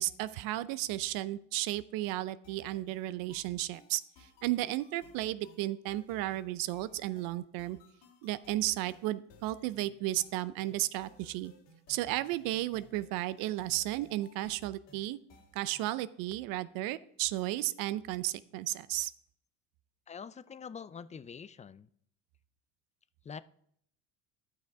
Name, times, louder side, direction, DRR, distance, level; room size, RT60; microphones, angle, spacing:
voice 1, 0.0-7.8 8.2-11.5 11.9-15.2 15.5-19.1, right 16 dB, 70° right, 16 dB, 0.6 m, -34 dB
sound 1, 2.4-16.0, left 3 dB, 80° left, 2.6 m, -61 dB
voice 2, 20.1-21.9 23.2-23.4, left 6 dB, 20° left, 16 dB, 0.4 m, -45 dB
12.0 x 6.4 x 4.7 m, 0.67 s
supercardioid pair, 95°, 35 cm